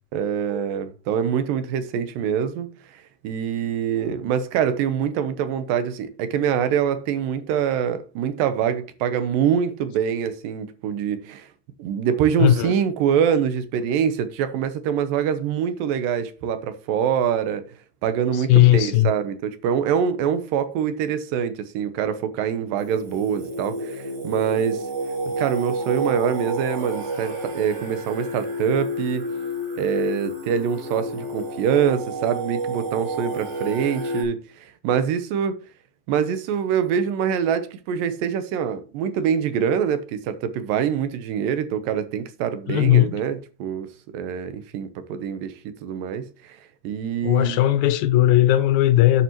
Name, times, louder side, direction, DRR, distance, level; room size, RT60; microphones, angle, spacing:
voice 1, 0.1-11.5 11.8-17.6 18.0-24.9 25.3-29.3 29.8-35.6 36.1-43.9 44.1-46.6 46.8-47.6, right 8 dB, 85° right, 2.6 m, -25 dB
voice 2, 12.4-12.7 18.3-19.1 42.7-43.2 47.2-49.2, left 13 dB, 75° left, 1.8 m, -17 dB
Singing, 22.8-34.2, right 1 dB, 45° right, 4.4 m, -30 dB
9.8 x 7.1 x 3.0 m
omnidirectional pair, 3.9 m